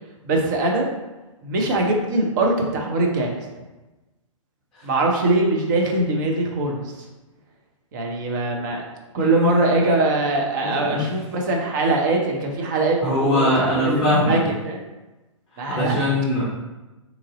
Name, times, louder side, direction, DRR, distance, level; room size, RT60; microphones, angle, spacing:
voice 1, 0.2-0.9 1.4-3.3 4.8-6.8 7.9-8.8 9.1-14.4 14.6-14.8 15.6-15.9, right 2 dB, 35° right, 1 dB, 0.6 m, -22 dB
voice 2, 9.2-9.8 10.6-11.0 13.0-14.4 15.8-16.4, left 1 dB, ahead, -9 dB, 0.7 m, -21 dB
2.9 x 2.5 x 3.7 m, 1.1 s
figure-of-eight pair, 120°, 17 cm